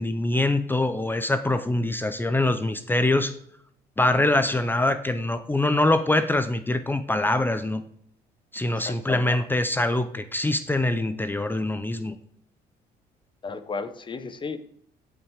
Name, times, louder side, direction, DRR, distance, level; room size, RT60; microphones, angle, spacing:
voice 1, 0.0-3.3 4.0-7.8 8.5-12.2, left 2 dB, 10° left, 10 dB, 0.7 m, -24 dB
voice 2, 8.7-9.3 13.4-14.6, left 4 dB, 30° left, 11 dB, 1.0 m, -34 dB
16.5 x 5.7 x 4.9 m, 0.67 s
cardioid pair, 110°, 17 cm